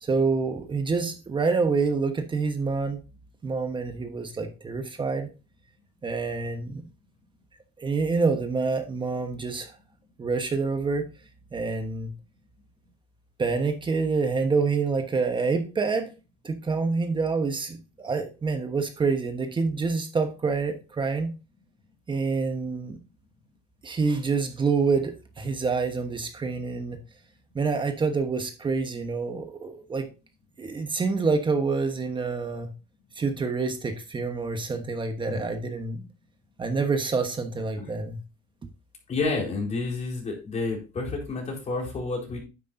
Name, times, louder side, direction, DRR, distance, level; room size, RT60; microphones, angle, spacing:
voice 1, 0.0-3.0 3.4-5.3 6.0-6.8 7.8-9.7 10.2-11.1 11.5-12.1 13.4-16.1 16.4-21.3 22.1-23.0 23.8-27.0 27.5-30.1 30.6-32.7 33.1-36.0 36.6-38.2, right 4 dB, 30° right, 6 dB, 1.2 m, -27 dB
voice 2, 39.1-42.4, left 3 dB, 40° left, 0 dB, 4.3 m, -30 dB
9.9 x 8.0 x 2.7 m, 0.31 s
cardioid pair, 110°, 17 cm